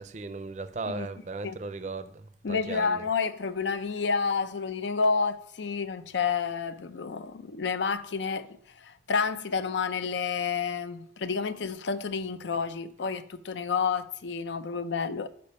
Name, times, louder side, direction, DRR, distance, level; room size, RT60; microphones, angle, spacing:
voice 1, 0.0-3.0, right 3 dB, 40° right, 0.5 m, -37 dB
voice 2, 2.4-15.3, left 5 dB, 85° left, 0.5 m, -30 dB
6.8 x 5.1 x 5.4 m
head